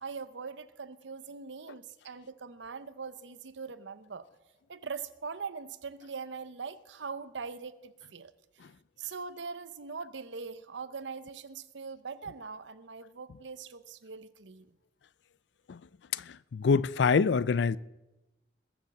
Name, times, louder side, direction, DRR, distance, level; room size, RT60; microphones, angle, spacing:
voice 1, 0.0-4.3 4.7-8.3 9.0-14.7, right 5 dB, 85° right, 0.8 m, -41 dB
voice 2, 16.1-17.8, left 5 dB, 70° left, 0.4 m, -26 dB
21.0 x 7.2 x 7.2 m
head